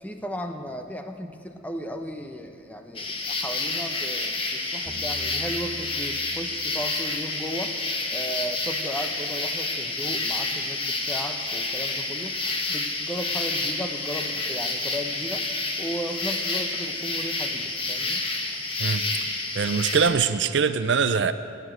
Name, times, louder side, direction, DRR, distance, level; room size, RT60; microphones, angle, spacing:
voice 1, 0.0-7.7 8.1-12.4 12.7-15.4 15.8-18.2, equal, 10° left, 6 dB, 0.8 m, -35 dB
sound 1, 2.9-20.1, left 3 dB, 25° left, 1.3 m, -29 dB
sound 2, 4.9-7.1, right 1 dB, 25° right, 1.0 m, -43 dB
voice 2, 19.6-21.3, right 6 dB, 60° right, 12 dB, 0.5 m, -22 dB
18.0 x 9.3 x 7.9 m, 2.6 s
head